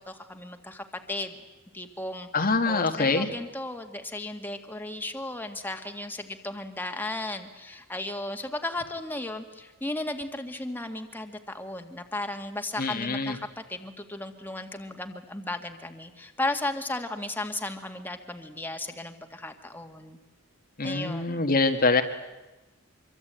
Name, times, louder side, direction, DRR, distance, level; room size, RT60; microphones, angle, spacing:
voice 1, 0.0-1.3 1.7-2.3 2.7-20.2 20.8-21.4, left 2 dB, 10° left, 5 dB, 2.0 m, -35 dB
voice 2, 2.3-3.3 12.8-13.4 20.8-22.0, left 3 dB, 45° left, 6 dB, 1.6 m, -24 dB
25.0 x 24.0 x 9.1 m, 1.1 s
head